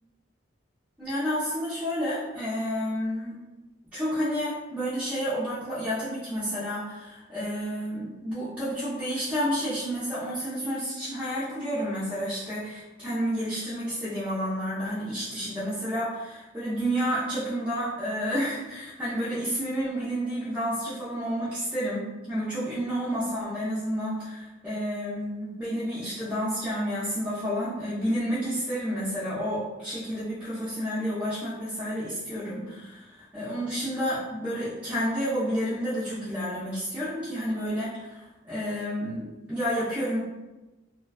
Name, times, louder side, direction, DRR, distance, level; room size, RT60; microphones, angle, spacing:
voice 1, 1.0-3.3 3.9-40.2, equal, 10° right, -11 dB, 0.5 m, -30 dB
2.4 x 2.2 x 2.3 m, 1.1 s
head